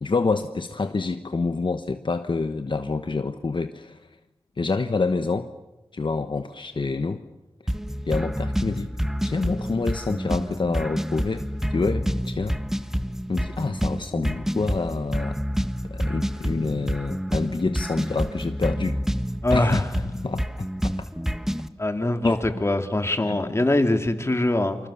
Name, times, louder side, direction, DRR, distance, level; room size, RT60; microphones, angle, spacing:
voice 1, 0.0-4.0 4.6-5.5 5.9-7.2 8.1-8.9 9.2-12.6 13.3-15.4 15.9-19.0 19.5-19.8 20.1-20.9 22.2-22.4 23.3-23.4, left 4 dB, 60° left, 8 dB, 1.2 m, -27 dB
sound 1, 7.7-21.7, equal, 5° right, 1.3 m, -28 dB
voice 2, 19.4-19.9 21.8-24.8, left 1 dB, 30° left, 6 dB, 2.7 m, -23 dB
28.5 x 26.0 x 7.2 m, 0.98 s
wide cardioid pair, 70°, 10 cm